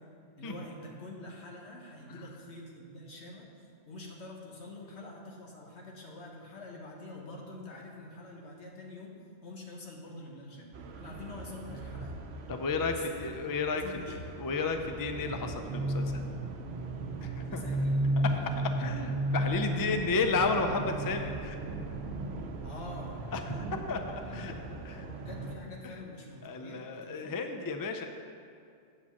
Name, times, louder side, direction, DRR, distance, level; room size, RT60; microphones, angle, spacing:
voice 1, 0.4-12.2 12.9-13.1 13.7-14.1 17.4-18.4 19.7-20.3 22.6-23.3 24.2-27.4, left 2 dB, 85° left, -1 dB, 1.6 m, -46 dB
sound 1, 10.7-25.6, right 1 dB, 75° right, 0.9 m, -35 dB
voice 2, 12.5-16.2 17.2-17.6 18.8-21.6 23.3-24.5 24.8-25.0 25.8-25.9 26.4-28.1, left 4 dB, 30° left, 5 dB, 0.4 m, -33 dB
8.2 x 5.1 x 7.0 m, 2.4 s
omnidirectional pair, 1.1 m